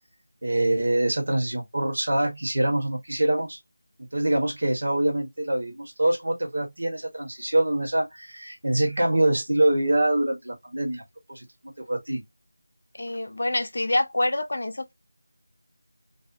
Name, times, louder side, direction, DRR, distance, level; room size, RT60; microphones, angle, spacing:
voice 1, 0.4-3.6 4.1-11.0 11.3-11.4 11.9-12.2, right 1 dB, 60° right, 1.3 m, -24 dB
voice 2, 13.0-14.9, left 2 dB, 55° left, 0.5 m, -26 dB
2.6 x 2.0 x 2.6 m
figure-of-eight pair, 175°, 0 cm